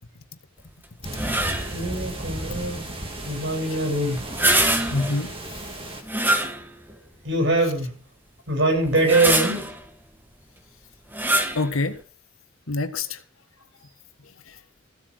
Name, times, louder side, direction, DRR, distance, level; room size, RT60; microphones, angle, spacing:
sound 1, 1.0-6.0, right 1 dB, 25° right, 2.7 m, -34 dB
sound 2, 1.1-1.8 4.2-5.2 6.0-7.0 7.5-7.6 8.8-9.8 11.1-11.7, right 1 dB, 10° right, 1.6 m, -24 dB
voice 1, 1.7-2.9 3.2-4.3 7.2-7.9 8.5-9.8, right 2 dB, 60° right, 7.6 m, -23 dB
voice 2, 4.9-5.6 11.3-12.0 12.7-13.2 14.5-14.6, left 3 dB, 80° left, 1.6 m, -27 dB
15.5 x 7.9 x 6.4 m
head